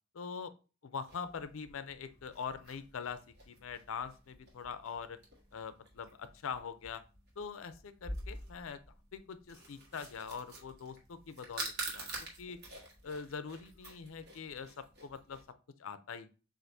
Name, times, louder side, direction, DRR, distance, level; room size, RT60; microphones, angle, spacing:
voice 1, 0.1-0.5 0.8-3.2 3.5-5.2 5.5-7.0 7.4-8.8 9.1-12.1 12.4-12.6 13.0-15.4 15.8-16.3, left 6 dB, 75° left, 12 dB, 0.5 m, -43 dB
sound 1, 1.1-15.5, right 2 dB, 50° right, 1.5 m, -47 dB
7.6 x 2.6 x 2.6 m, 0.34 s
head